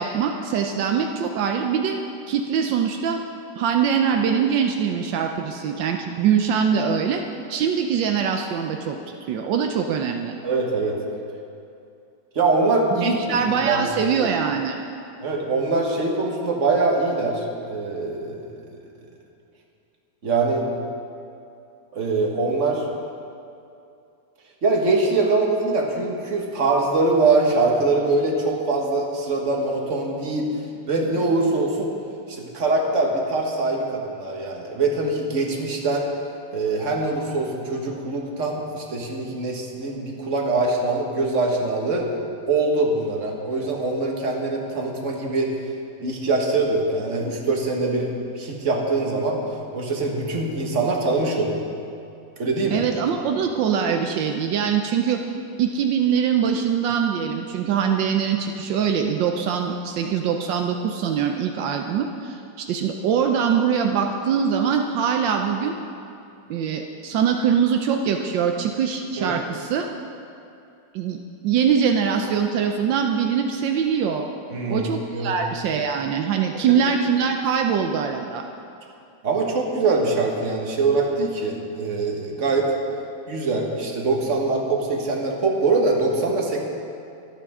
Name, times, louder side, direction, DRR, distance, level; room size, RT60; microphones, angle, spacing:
voice 1, 0.0-2.0 2.3-3.2 3.6-7.2 7.5-10.3 13.0-14.8 52.7-55.2 55.6-65.8 66.5-69.9 70.9-74.3 74.7-78.5, right 7 dB, 80° right, 4 dB, 1.4 m, -23 dB
voice 2, 10.4-11.0 12.4-13.9 15.2-18.8 20.2-20.6 21.9-22.9 24.6-30.5 30.9-31.9 32.3-36.1 36.5-42.1 42.5-45.5 46.0-49.4 49.7-51.7 52.4-52.8 69.2-69.4 74.5-75.4 79.2-82.7 83.3-86.6, right 3 dB, 45° right, 0 dB, 1.8 m, -23 dB
23.5 x 8.6 x 3.6 m, 2.6 s
omnidirectional pair, 2.0 m